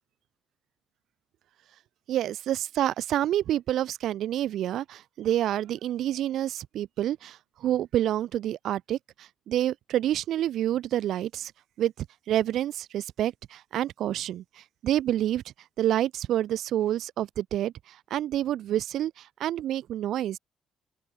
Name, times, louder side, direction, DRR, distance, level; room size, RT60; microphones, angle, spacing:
voice 1, 2.1-11.5 11.8-15.4 15.8-20.4, right 12 dB, 75° right, 7.4 m, -28 dB
cardioid pair, 90°, 0 cm